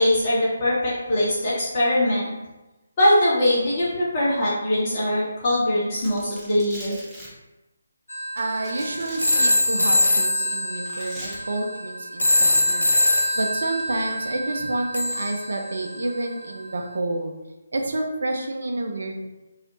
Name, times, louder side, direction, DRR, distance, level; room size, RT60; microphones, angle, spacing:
voice 1, 0.0-2.3 3.0-7.0, left 1 dB, 30° left, -9 dB, 0.8 m, -22 dB
Domestic sounds home sounds, 6.0-7.3 8.4-9.5 10.9-11.4 12.7-12.9 13.8-14.1, equal, 5° right, 0.6 m, -41 dB
sound 1, 8.1-16.2, left 1 dB, 85° left, 0.3 m, -23 dB
voice 2, 8.4-12.9 13.3-17.3 17.7-19.3, right 2 dB, 60° right, 2 dB, 0.4 m, -29 dB
2.3 x 2.0 x 2.9 m, 1.0 s
figure-of-eight pair, 145°, 0 cm